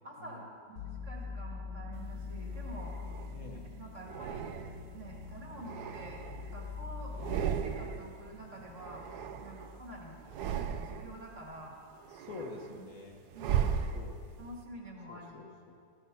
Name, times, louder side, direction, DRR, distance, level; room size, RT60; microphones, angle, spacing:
voice 1, 0.0-3.0 3.4-4.5 4.9-6.2 6.5-7.2 7.6-9.0 9.4-11.8 12.7-12.9 13.3-13.7 14.4-15.5, right 1 dB, 45° right, -1 dB, 2.2 m, -48 dB
sound 1, 0.8-10.3, left 5 dB, 85° left, 1.8 m, -44 dB
sound 2, 2.2-3.4 4.1-5.0 5.5-6.7 7.1-8.2 8.4-9.8 10.2-11.2 11.7-14.5, right 8 dB, 70° right, 1.2 m, -37 dB
voice 2, 3.3-3.6 12.1-13.2 13.9-14.2 15.1-15.7, left 3 dB, 55° left, 1 dB, 1.5 m, -46 dB
14.5 x 10.5 x 5.9 m, 2.2 s
omnidirectional pair, 1.9 m